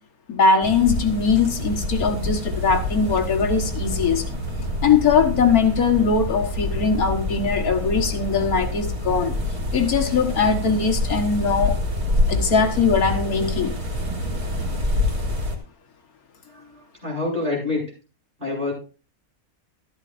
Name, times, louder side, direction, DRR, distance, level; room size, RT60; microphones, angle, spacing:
voice 1, 0.3-4.2 4.8-9.4 9.7-11.8 12.3-13.7, left 5 dB, 85° left, 4 dB, 2.0 m, -20 dB
sound 1, 0.6-15.6, left 1 dB, 75° right, 3.2 m, -26 dB
voice 2, 16.4-17.8 18.4-18.7, left 2 dB, 35° right, -4 dB, 8.2 m, -27 dB
13.5 x 13.0 x 2.6 m, 0.34 s
omnidirectional pair, 1.5 m